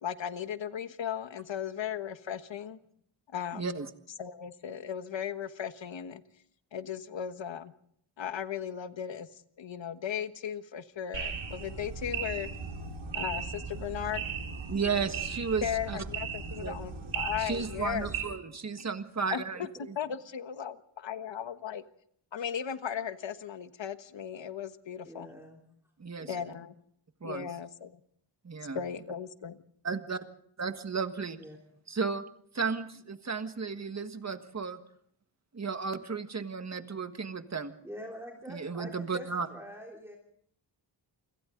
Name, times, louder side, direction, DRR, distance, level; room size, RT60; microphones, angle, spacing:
voice 1, 0.0-2.8 3.3-3.8 4.2-6.2 6.7-7.7 8.2-9.3 9.6-12.5 13.1-14.2 15.6-18.1 19.3-19.7 20.0-21.8 22.3-25.3 26.3-26.7 27.2-28.0 28.7-29.5, left 8 dB, 60° left, 10 dB, 1.4 m, -36 dB
voice 2, 3.5-3.9 14.7-16.0 16.6-16.8 17.4-19.9 26.0-26.3 27.2-27.5 28.4-28.8 29.8-30.2 30.6-31.4 31.9-32.2 32.5-34.8 35.5-37.7 38.5-39.5, right 5 dB, 30° right, 8 dB, 1.6 m, -34 dB
sound 1, 11.1-18.2, right 6 dB, 70° right, 5.0 m, -37 dB
voice 3, 14.7-15.1 18.1-18.2 19.2-19.6 25.0-25.6 26.2-26.6 31.4-31.6 37.8-40.2, equal, 5° right, -1 dB, 3.3 m, -46 dB
28.0 x 25.5 x 3.9 m, 0.67 s
wide cardioid pair, 150°, 49 cm